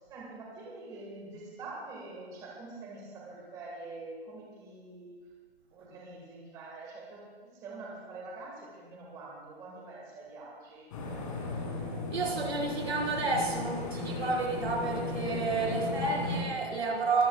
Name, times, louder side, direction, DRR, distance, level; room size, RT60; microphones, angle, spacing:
voice 1, 0.1-5.3 5.7-10.9 15.7-16.2, right 3 dB, 10° right, -3 dB, 1.7 m, -45 dB
sound 1, 10.9-16.4, left 2 dB, 35° left, 2.8 m, -36 dB
voice 2, 12.1-17.3, right 3 dB, 80° right, -1 dB, 4.7 m, -30 dB
23.0 x 14.5 x 2.4 m, 1.5 s
hypercardioid pair, 170°, 32 cm